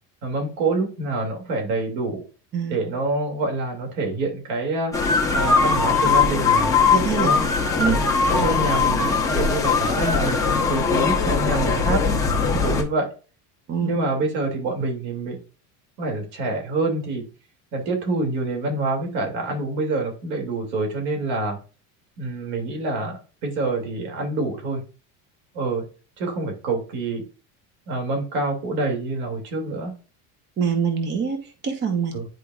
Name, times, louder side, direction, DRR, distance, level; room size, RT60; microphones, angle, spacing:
voice 1, 0.2-2.3 2.7-5.0 5.3-6.7 7.1-7.4 7.8-12.2 12.6-13.1 13.8-15.4 16.0-17.2 17.7-21.6 22.2-24.8 25.5-25.8 26.2-27.2 27.9-29.9 32.1-32.3, right 2 dB, 85° right, 2 dB, 2.7 m, -26 dB
sound 1, 4.9-12.8, left 4 dB, 10° left, 0.9 m, -20 dB
voice 2, 6.9-7.3 7.8-8.0 13.7-14.0 30.6-32.1, right 6 dB, 25° right, 5 dB, 1.0 m, -24 dB
10.5 x 4.7 x 2.4 m, 0.36 s
cardioid pair, 175°, 39 cm